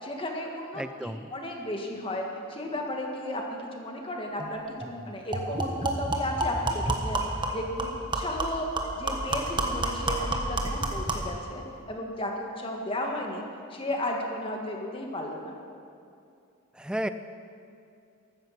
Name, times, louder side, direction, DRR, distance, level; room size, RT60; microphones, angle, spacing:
voice 1, 0.0-8.7 9.0-13.4 13.7-15.6, left 1 dB, 25° left, 1 dB, 1.8 m, -34 dB
voice 2, 0.8-1.3 16.8-17.1, right 1 dB, 5° right, 11 dB, 0.4 m, -32 dB
sound 1, 4.4-4.5 4.8-4.9 5.3-11.3, right 2 dB, 20° right, 1.3 m, -30 dB
14.5 x 13.0 x 6.0 m, 2.5 s
head